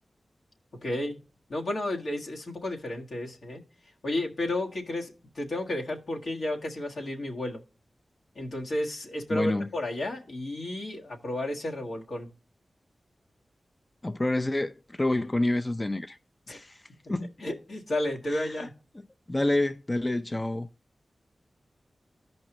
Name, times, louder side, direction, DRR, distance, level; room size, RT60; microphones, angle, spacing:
voice 1, 0.8-1.2 1.5-3.6 4.0-7.6 8.3-12.3 16.5-16.6 17.4-18.7, left 1 dB, 80° left, 1.6 m, -32 dB
voice 2, 9.3-9.7 14.0-16.2 16.5-16.8 17.1-17.3 18.3-18.7 19.3-20.7, left 1 dB, 30° left, 0.4 m, -28 dB
14.5 x 5.3 x 3.0 m
cardioid pair, 45°, 0 cm